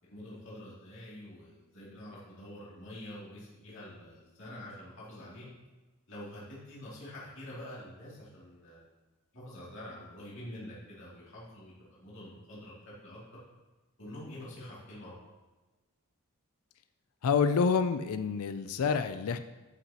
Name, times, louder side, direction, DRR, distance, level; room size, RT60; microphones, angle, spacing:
voice 1, 0.0-5.5 6.1-8.8 9.3-12.7 13.0-13.2 14.0-15.2, left 1 dB, 60° left, -7 dB, 2.5 m, -46 dB
voice 2, 17.2-19.4, left 5 dB, 80° left, 10 dB, 0.4 m, -28 dB
13.0 x 5.9 x 2.9 m, 1.2 s
head